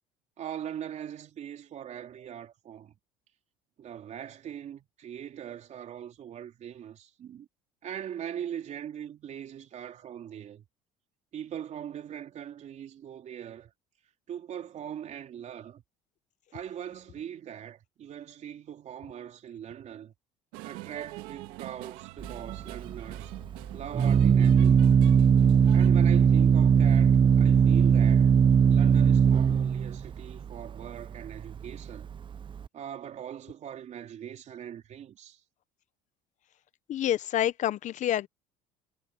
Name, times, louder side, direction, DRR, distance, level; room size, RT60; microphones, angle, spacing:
voice 1, 0.4-2.9 3.8-7.5 7.8-10.6 11.3-13.7 14.3-15.8 16.5-20.1 20.6-23.4 23.7-25.0 25.7-28.3 28.7-32.1 32.7-35.4, right 9 dB, 50° right, 3.6 m, -41 dB
sound 1, 20.5-25.9, right 20 dB, 75° right, 1.9 m, -43 dB
Organ, 22.2-32.7, right 7 dB, 30° right, 0.7 m, -21 dB
voice 2, 36.9-38.3, left 11 dB, 55° left, 1.1 m, -27 dB
supercardioid pair, 85°, 15 cm